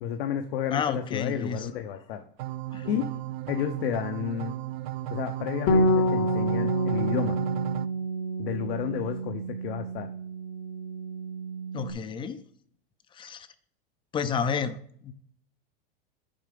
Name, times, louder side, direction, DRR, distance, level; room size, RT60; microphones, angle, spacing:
voice 1, 0.0-2.2 2.8-3.1 3.5-4.5 5.1-7.4 8.4-10.1, left 9 dB, 75° left, 6 dB, 0.9 m, -31 dB
voice 2, 0.7-1.7 2.7-2.9 11.7-12.5 13.1-13.5 14.1-15.1, left 6 dB, 15° left, 12 dB, 0.4 m, -31 dB
sound 1, 2.4-7.9, right 15 dB, 90° right, 0.5 m, -35 dB
Bass guitar, 5.7-11.9, equal, 45° left, 0.8 m, -28 dB
7.2 x 4.6 x 5.2 m, 0.62 s
supercardioid pair, 145°, 30 cm